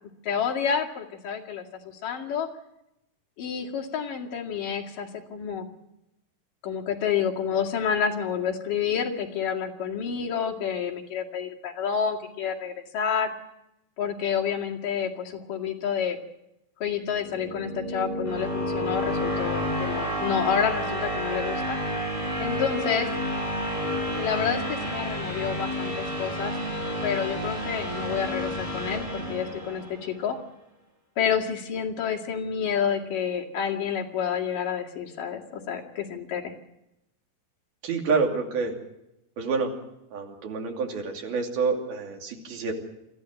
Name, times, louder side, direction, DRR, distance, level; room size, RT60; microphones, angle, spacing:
voice 1, 0.2-2.5 3.4-5.7 6.6-13.3 14.0-16.2 16.8-21.8 22.4-23.1 24.1-26.5 27.0-30.4 31.2-36.5, left 7 dB, 65° left, 0 dB, 3.8 m, -29 dB
sound 1, 17.1-30.1, equal, 10° left, 7.4 m, -30 dB
voice 2, 37.8-38.7 39.4-39.7 40.1-42.7, right 4 dB, 85° right, 2 dB, 4.6 m, -27 dB
25.5 x 14.5 x 7.7 m, 0.87 s
omnidirectional pair, 4.2 m